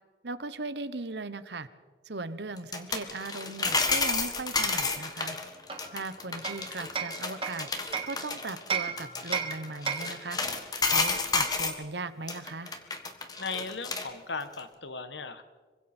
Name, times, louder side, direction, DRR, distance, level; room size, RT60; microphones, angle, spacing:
voice 1, 0.2-1.7 2.0-5.4 5.9-7.7 8.0-10.4 10.8-12.7, right 3 dB, 80° right, 13 dB, 1.1 m, -38 dB
sound 1, 2.6-11.8 12.3-14.1 14.4-14.5, left 4 dB, 20° left, 1.5 m, -31 dB
Hammer, 5.7-8.2 8.7-10.3, right 6 dB, 30° right, 1.5 m, -34 dB
voice 2, 13.4-15.4, left 4 dB, 90° left, 10 dB, 1.5 m, -37 dB
26.0 x 24.0 x 4.5 m, 1.5 s
head